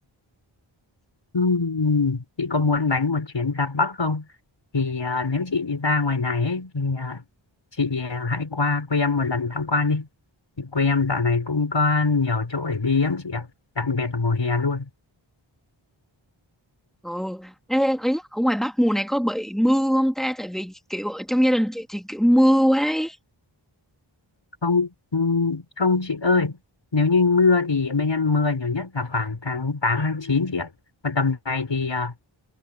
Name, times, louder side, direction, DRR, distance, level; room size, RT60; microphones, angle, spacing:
voice 1, 1.3-4.3 4.7-7.2 7.8-10.1 10.6-13.5 13.8-14.9 24.6-26.6 26.9-30.7 31.0-32.1, left 4 dB, 60° left, 6.7 m, -23 dB
voice 2, 17.0-23.2, equal, ahead, 2.5 m, -22 dB
wide cardioid pair, 60°, 49 cm